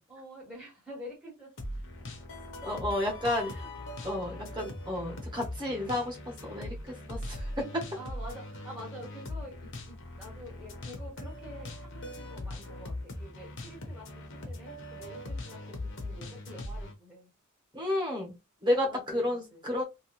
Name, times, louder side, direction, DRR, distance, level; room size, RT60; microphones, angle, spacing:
voice 1, 0.1-1.9 3.3-3.7 7.9-17.3 18.9-19.6, equal, 5° right, -5 dB, 1.0 m, -48 dB
sound 1, 1.6-16.9, left 1 dB, 60° left, 0.9 m, -41 dB
voice 2, 2.6-3.5 4.0-7.8 17.7-18.3 18.6-19.8, left 1 dB, 20° right, -1 dB, 1.2 m, -31 dB
3.0 x 2.8 x 3.0 m, 0.25 s
head